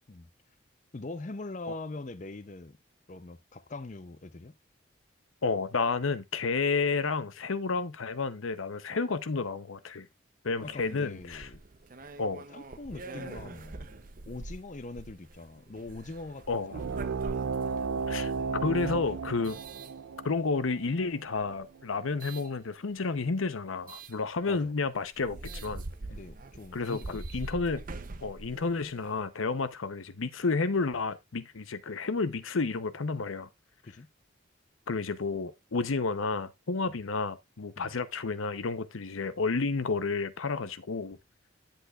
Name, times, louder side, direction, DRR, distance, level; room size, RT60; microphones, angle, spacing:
voice 1, 0.9-2.8 3.1-4.5 10.6-11.6 12.5-13.9 14.3-17.0 24.5-24.7 26.1-27.4 33.8-34.1 36.9-37.0 37.8-37.9, left 2 dB, 35° left, 0.6 m, -42 dB
voice 2, 5.4-10.1 10.4-11.5 12.2-12.4 16.5-16.7 18.1-18.3 18.6-19.6 20.2-25.8 26.7-27.8 28.2-33.5 34.9-41.2, left 4 dB, 85° left, 0.8 m, -31 dB
sound 1, 10.6-20.6 21.2-22.5 23.9-24.1 24.7-24.8 25.0-29.2, right 2 dB, 45° right, 0.6 m, -44 dB
sound 2, 16.7-21.8, right 5 dB, 85° right, 0.5 m, -34 dB
10.0 x 8.0 x 2.4 m
head